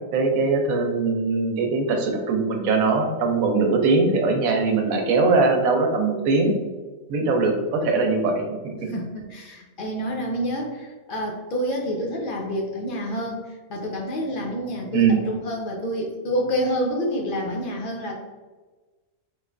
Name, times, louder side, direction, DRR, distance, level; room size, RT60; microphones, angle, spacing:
voice 1, 0.1-6.5 7.1-8.9 14.9-15.2, right 3 dB, 85° right, 3 dB, 1.1 m, -21 dB
voice 2, 8.9-18.1, equal, 65° left, 0 dB, 0.5 m, -28 dB
3.6 x 3.1 x 2.4 m, 1.3 s
omnidirectional pair, 1.4 m